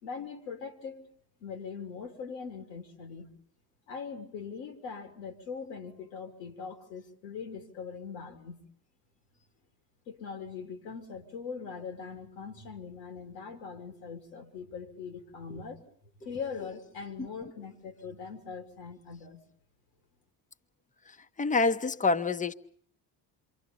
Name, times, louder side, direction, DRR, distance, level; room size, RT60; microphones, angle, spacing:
voice 1, 0.0-1.1 1.4-3.3 3.9-8.6 10.1-15.8 16.2-19.4, left 5 dB, 90° left, 3.4 m, -41 dB
voice 2, 21.1-22.5, left 3 dB, 15° left, 1.1 m, -28 dB
27.5 x 24.5 x 5.5 m
hypercardioid pair, 65°, 47 cm